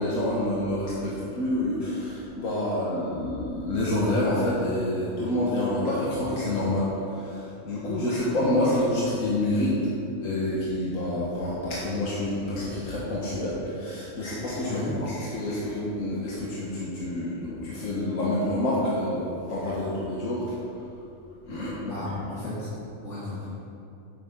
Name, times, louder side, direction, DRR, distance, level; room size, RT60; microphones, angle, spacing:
voice 1, 0.0-9.8 10.2-20.5 21.4-21.7, left 1 dB, 80° left, -6 dB, 1.7 m, -28 dB
voice 2, 14.6-14.9 21.8-22.7 23.0-23.5, left 2 dB, 65° left, -10 dB, 2.3 m, -34 dB
9.9 x 8.6 x 3.7 m, 2.8 s
omnidirectional pair, 1.4 m